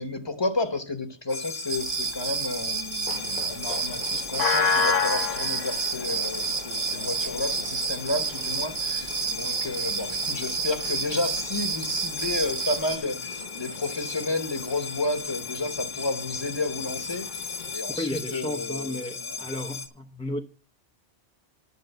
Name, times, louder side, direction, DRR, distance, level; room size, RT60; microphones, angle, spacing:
voice 1, 0.0-19.4, left 2 dB, 25° left, 1.0 m, -31 dB
sound 1, 1.3-19.9, left 5 dB, 90° left, 1.5 m, -33 dB
sound 2, 1.7-13.0, right 6 dB, 55° right, 0.9 m, -30 dB
sound 3, 3.1-17.8, left 6 dB, 45° left, 0.7 m, -44 dB
voice 2, 17.9-20.4, left 1 dB, 5° left, 0.4 m, -33 dB
11.0 x 5.2 x 7.9 m
omnidirectional pair, 1.2 m